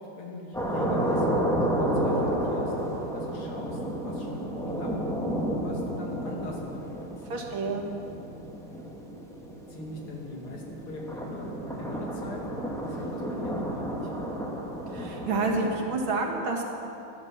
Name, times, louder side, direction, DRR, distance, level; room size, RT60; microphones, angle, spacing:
voice 1, 0.0-1.3 1.7-2.7 3.1-4.9 5.2-7.1 9.7-14.3, left 2 dB, 85° left, -1 dB, 3.2 m, -42 dB
sound 1, 0.5-15.8, right 1 dB, ahead, 1.5 m, -31 dB
voice 2, 7.3-7.8 14.9-16.6, right 3 dB, 70° right, 1 dB, 2.5 m, -29 dB
15.0 x 11.0 x 7.3 m, 2.7 s
omnidirectional pair, 2.3 m